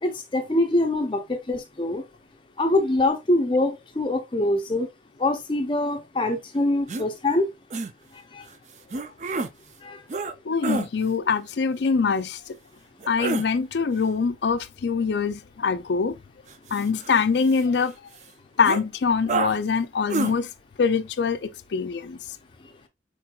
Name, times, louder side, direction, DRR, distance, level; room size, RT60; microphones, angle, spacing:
voice 1, 0.0-2.0 2.6-4.9 5.2-7.5 8.3-8.4 9.8-10.0, left 2 dB, 30° left, 0.5 m, -24 dB
sound 1, 6.9-7.1 7.7-7.9 8.9-9.5 10.1-10.3 10.6-10.9 13.0-13.5 16.5-17.8 18.2-18.3 18.6-18.8 19.3-19.6 20.1-20.3, right 3 dB, 40° right, 0.4 m, -28 dB
voice 2, 10.4-12.6 13.1-16.2 16.7-17.9 18.6-20.5 20.8-22.2, left 5 dB, 75° left, 0.4 m, -24 dB
4.4 x 4.4 x 2.3 m
head